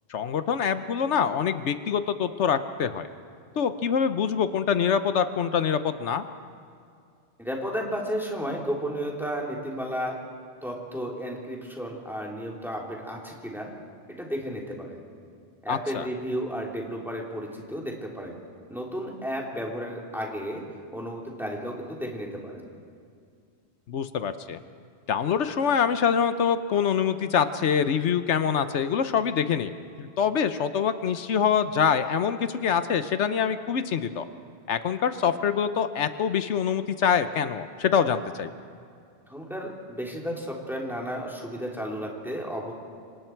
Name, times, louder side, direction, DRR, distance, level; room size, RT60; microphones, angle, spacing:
voice 1, 0.1-3.1 3.6-6.2 15.7-16.1 23.9-24.6 25.1-29.7 30.0-34.3 34.7-38.5, left 7 dB, 80° left, 10 dB, 1.1 m, -25 dB
voice 2, 7.4-10.2 10.6-13.7 14.1-15.0 15.6-18.4 18.7-20.6 20.9-22.7 39.3-42.7, equal, ahead, -2 dB, 3.1 m, -33 dB
27.5 x 25.0 x 4.6 m, 2.4 s
omnidirectional pair, 1.2 m